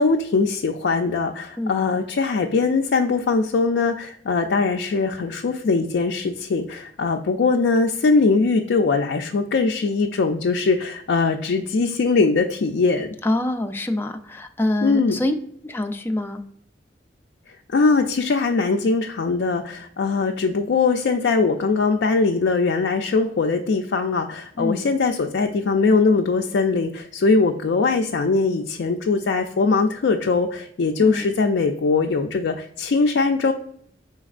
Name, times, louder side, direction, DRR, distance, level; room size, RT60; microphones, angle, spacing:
voice 1, 0.0-13.1 14.8-15.2 17.7-33.5, left 4 dB, 80° left, 3 dB, 0.4 m, -21 dB
voice 2, 13.2-15.4 15.6-16.4 24.6-24.8 31.0-31.3, left 1 dB, 10° left, 5 dB, 0.4 m, -25 dB
5.1 x 3.9 x 2.4 m, 0.66 s
head